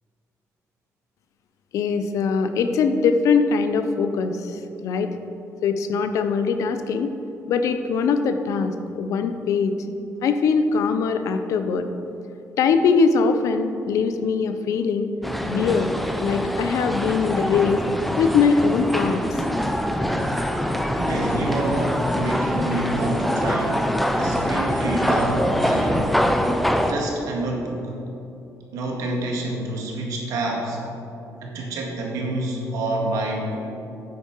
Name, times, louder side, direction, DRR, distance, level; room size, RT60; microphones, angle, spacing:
voice 1, 1.7-5.1 5.6-7.1 7.5-9.7 10.2-11.9 12.6-15.1 15.4-15.9 16.2-17.8 18.2-19.4, left 5 dB, 65° left, 8 dB, 0.6 m, -22 dB
sound 1, 15.2-26.9, equal, ahead, 0.5 m, -24 dB
voice 2, 21.0-26.1 26.8-28.0 28.7-30.8 31.4-33.6, right 2 dB, 80° right, 0 dB, 1.8 m, -27 dB
9.5 x 8.1 x 4.6 m, 2.8 s
cardioid pair, 165°, 6 cm